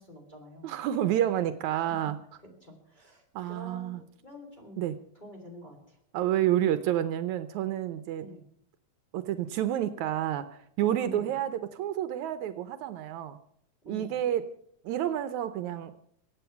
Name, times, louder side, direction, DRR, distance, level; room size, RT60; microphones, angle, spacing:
voice 1, 0.0-0.7 1.7-1.9 2.4-4.8 5.1-6.0 8.2-8.4 11.0-11.3 13.8-14.1, equal, 15° left, 0 dB, 3.1 m, -47 dB
voice 2, 0.6-2.2 3.4-4.0 4.8-5.0 6.1-8.3 9.1-13.4 13.9-14.5 14.9-15.9, right 11 dB, 75° right, 12 dB, 2.0 m, -29 dB
24.0 x 8.8 x 5.8 m, 0.69 s
omnidirectional pair, 3.5 m